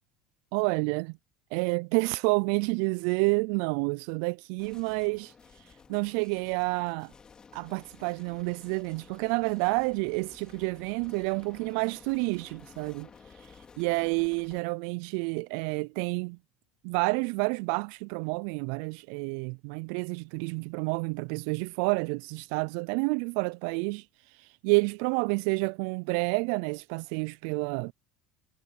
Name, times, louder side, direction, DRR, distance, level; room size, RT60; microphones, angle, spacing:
voice 1, 0.5-1.2 1.5-7.1 7.5-16.4 16.8-27.9, right 32 dB, 70° right, 0.3 m, -29 dB
sound 1, 4.6-14.6, left 5 dB, 30° left, 3.7 m, -54 dB
hypercardioid pair, 80°, 3 cm